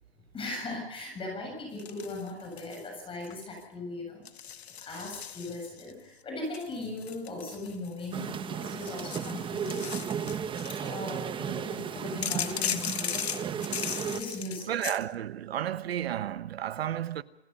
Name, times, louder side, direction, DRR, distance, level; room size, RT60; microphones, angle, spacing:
voice 1, 0.3-4.2 4.8-9.9 10.7-13.4 14.0-14.7, left 2 dB, 15° left, 7.4 m, -38 dB
sound 1, 1.8-2.9 3.2-3.6 4.3-5.9 6.5-8.3 8.7-10.9 12.2-15.0, left 8 dB, 85° left, 1.5 m, -37 dB
sound 2, 8.1-14.2, right 7 dB, 15° right, 1.2 m, -35 dB
voice 2, 14.7-17.2, right 11 dB, 70° right, 1.2 m, -32 dB
28.0 x 17.0 x 5.6 m
hypercardioid pair, 130°, 31 cm